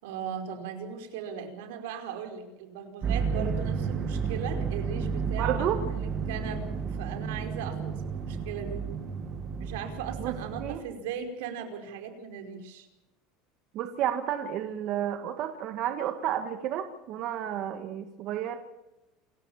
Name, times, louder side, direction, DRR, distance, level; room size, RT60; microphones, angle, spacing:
voice 1, 0.0-6.0 6.3-6.7 7.0-8.8 9.6-12.9, right 7 dB, 80° right, 6 dB, 5.1 m, -38 dB
sound 1, 3.0-10.8, right 6 dB, 30° right, 2.0 m, -32 dB
voice 2, 5.4-5.8 10.2-10.8 13.7-18.6, right 11 dB, 45° right, 7 dB, 1.8 m, -31 dB
28.0 x 15.0 x 7.2 m, 0.97 s
cardioid pair, 165°, 0 cm